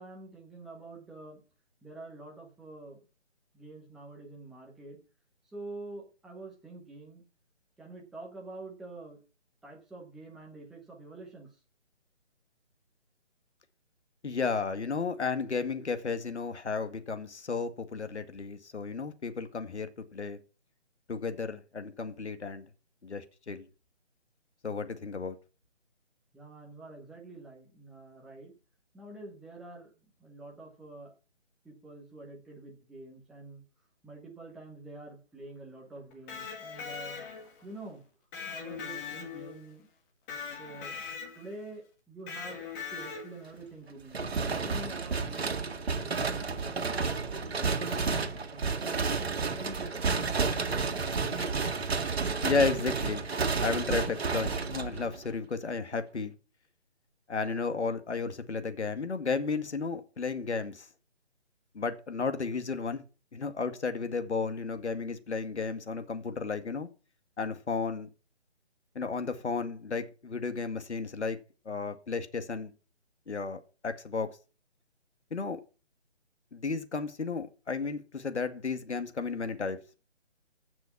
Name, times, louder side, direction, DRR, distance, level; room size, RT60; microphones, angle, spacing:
voice 1, 0.0-1.4 1.8-3.0 3.5-5.0 5.5-7.2 7.8-9.2 9.6-11.6 26.3-28.5 28.9-31.1 31.6-33.6 34.0-38.0 38.5-39.9 40.6-41.0 41.3-50.0, right 2 dB, ahead, 0.8 m, -47 dB
voice 2, 14.2-20.4 21.1-22.6 23.0-23.6 24.6-25.4 52.4-53.3 53.6-56.3 57.3-60.9 61.7-63.0 63.3-66.9 67.4-68.1 69.0-71.4 71.7-72.7 73.3-74.3 75.3-75.6 76.5-79.8, left 4 dB, 70° left, 2.1 m, -33 dB
Electric guitar, 36.1-37.6 38.3-39.7 40.3-41.6 42.3-43.5, left 6 dB, 15° left, 2.1 m, -40 dB
sound 1, 44.1-55.3, right 4 dB, 60° right, 1.9 m, -31 dB
15.5 x 6.1 x 6.0 m
figure-of-eight pair, 155°, 35 cm